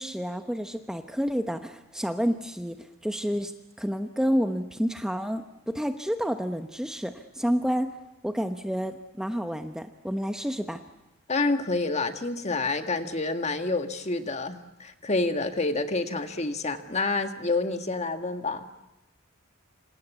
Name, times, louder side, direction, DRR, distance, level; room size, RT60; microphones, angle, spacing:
voice 1, 0.0-3.5 3.8-7.9 8.2-10.8, equal, 5° right, 7 dB, 1.0 m, -29 dB
voice 2, 11.3-18.7, left 3 dB, 35° left, 7 dB, 1.8 m, -28 dB
27.0 x 26.0 x 8.3 m, 0.97 s
head